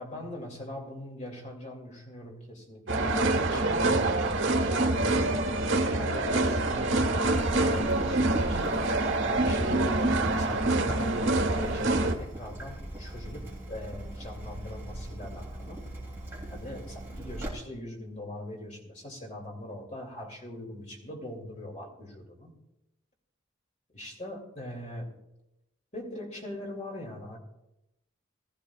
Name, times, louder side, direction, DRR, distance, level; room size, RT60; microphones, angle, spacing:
voice 1, 0.0-4.3 4.9-5.3 5.9-8.7 9.2-15.8 16.5-22.5 23.9-25.1 25.9-27.4, left 1 dB, 35° left, 0 dB, 2.6 m, -41 dB
sound 1, 2.9-12.1, right 2 dB, 75° right, 1.3 m, -26 dB
Water tap faucet / Drip, 7.3-17.5, right 1 dB, 10° right, 2.9 m, -40 dB
20.5 x 13.5 x 2.4 m, 0.89 s
head